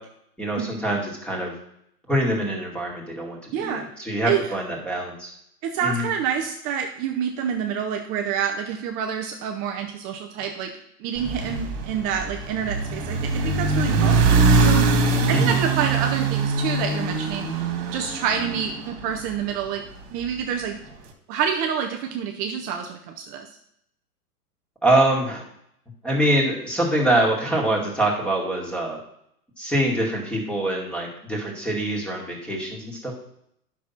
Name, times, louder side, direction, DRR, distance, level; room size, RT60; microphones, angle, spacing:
voice 1, 0.4-1.5 2.1-5.3 5.8-6.1 15.3-15.6 24.8-25.5 26.0-29.0 29.6-33.1, right 1 dB, ahead, -1 dB, 2.3 m, -24 dB
voice 2, 3.5-3.9 4.3-4.4 5.6-10.7 11.0-14.9 15.3-17.6 17.9-19.8 20.1-20.8 21.3-23.5, right 7 dB, 20° right, 3 dB, 0.5 m, -27 dB
sound 1, 11.2-19.5, right 3 dB, 35° right, 2.0 m, -22 dB
9.2 x 6.1 x 5.6 m, 0.74 s
hypercardioid pair, 125°, 46 cm